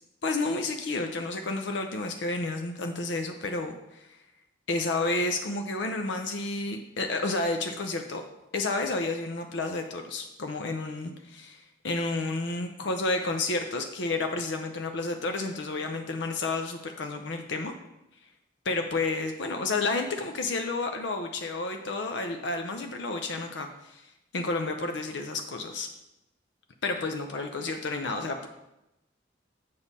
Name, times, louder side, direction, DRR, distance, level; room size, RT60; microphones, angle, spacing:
voice 1, 0.2-4.2 4.7-8.2 8.5-17.7 18.6-24.0 24.3-25.9 26.8-28.5, left 3 dB, 65° left, 5 dB, 0.6 m, -31 dB
7.2 x 6.7 x 4.1 m, 0.89 s
head